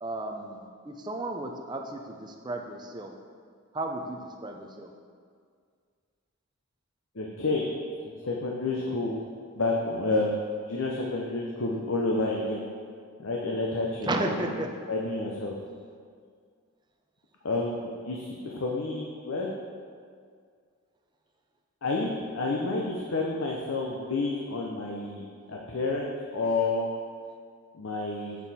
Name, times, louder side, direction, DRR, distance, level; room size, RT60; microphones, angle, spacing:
voice 1, 0.0-3.1 3.7-4.9 14.1-14.7, right 2 dB, 20° right, 3 dB, 0.5 m, -34 dB
voice 2, 7.1-7.7 8.2-9.2 9.6-12.6 13.2-14.6 14.9-15.5 17.4-19.5 21.8-26.9 27.7-28.4, left 2 dB, 70° left, -1 dB, 0.7 m, -29 dB
7.0 x 6.0 x 4.2 m, 2.1 s
head